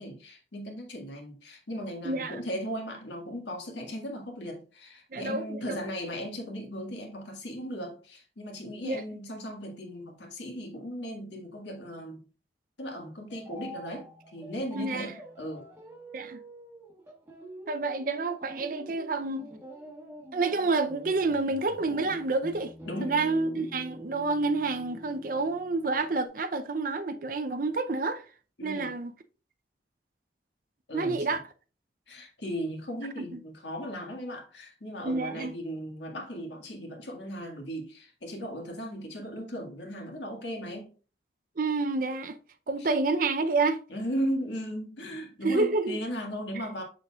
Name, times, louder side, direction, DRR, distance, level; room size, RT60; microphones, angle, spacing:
voice 1, 0.0-12.2 12.8-15.7 22.8-23.2 28.6-28.9 30.9-31.4 32.1-40.9 42.8-42.9 43.9-46.8, equal, 75° left, 1.7 m, -37 dB
voice 2, 2.0-2.4 5.1-5.8 8.8-9.0 14.7-15.1 16.1-16.4 17.7-19.5 20.3-22.7 23.0-28.2 28.6-29.1 30.9-31.4 35.1-35.5 41.6-42.4 42.7-43.8 45.4-46.0, right 3 dB, 50° right, 0.5 m, -28 dB
sound 1, 13.3-26.3, equal, 15° right, 1.2 m, -46 dB
6.6 x 6.5 x 2.4 m
head